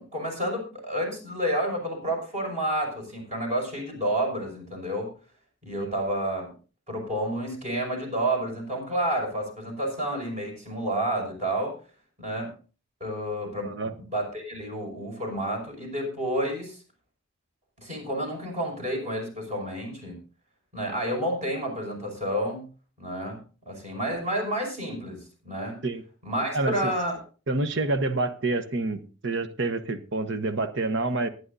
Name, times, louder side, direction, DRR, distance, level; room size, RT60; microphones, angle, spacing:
voice 1, 0.0-5.1 5.6-6.5 6.9-11.8 12.2-12.5 13.0-16.8 17.8-20.2 20.7-22.6 23.0-23.4 23.7-25.8 26.2-27.2, right 1 dB, 35° right, 5.6 m, -30 dB
voice 2, 26.5-26.9 27.5-31.3, right 2 dB, 65° right, 1.1 m, -28 dB
22.5 x 9.5 x 2.7 m
head